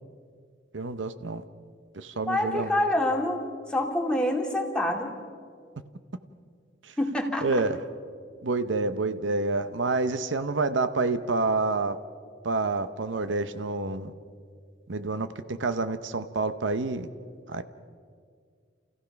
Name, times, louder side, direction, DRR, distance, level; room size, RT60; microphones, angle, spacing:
voice 1, 0.7-1.4 1.9-2.8 6.8-6.9 7.4-7.8 8.4-12.0 12.4-14.1 14.9-17.1 17.5-17.6, right 3 dB, 80° right, 10 dB, 0.8 m, -28 dB
voice 2, 2.3-3.4 3.7-5.1 7.0-7.5, left 1 dB, 5° left, 0 dB, 2.2 m, -26 dB
29.0 x 15.5 x 5.9 m, 2.1 s
head